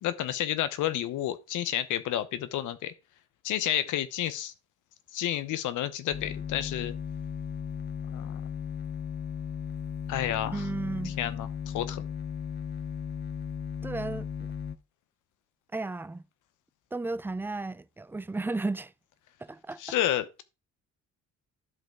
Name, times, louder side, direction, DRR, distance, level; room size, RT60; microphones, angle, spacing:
voice 1, 0.0-2.9 3.4-4.5 5.1-6.9 8.1-8.4 10.1-10.6 11.0-12.0 19.8-20.4, left 12 dB, 85° left, 0.9 m, -30 dB
sound 1, 6.1-14.8, left 7 dB, 35° left, 0.8 m, -36 dB
voice 2, 10.5-11.2 13.8-14.3 15.7-16.2 16.9-18.9 19.4-19.8, right 3 dB, 10° right, 0.3 m, -34 dB
11.0 x 5.1 x 3.6 m
cardioid pair, 90°, 30 cm